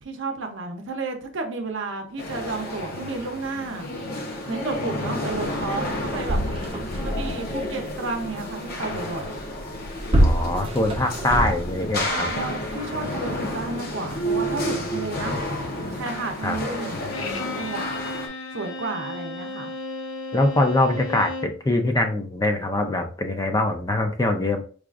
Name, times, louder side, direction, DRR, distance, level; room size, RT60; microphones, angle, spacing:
voice 1, 0.0-3.9 4.5-6.4 7.0-9.4 12.1-15.3 15.9-17.8 18.5-19.7, right 3 dB, 65° right, 4 dB, 0.7 m, -32 dB
sound 1, 2.2-18.3, left 1 dB, 50° left, 0.8 m, -31 dB
sound 2, 5.6-5.7 5.9-7.3 9.6-12.0 12.7-12.8, right 1 dB, 30° right, 0.6 m, -24 dB
voice 2, 10.2-12.3 16.4-16.6 20.3-24.6, left 2 dB, 20° left, 5 dB, 0.4 m, -23 dB
Bowed string instrument, 17.1-21.6, left 2 dB, 85° left, 0.5 m, -34 dB
4.7 x 2.4 x 2.4 m, 0.40 s
head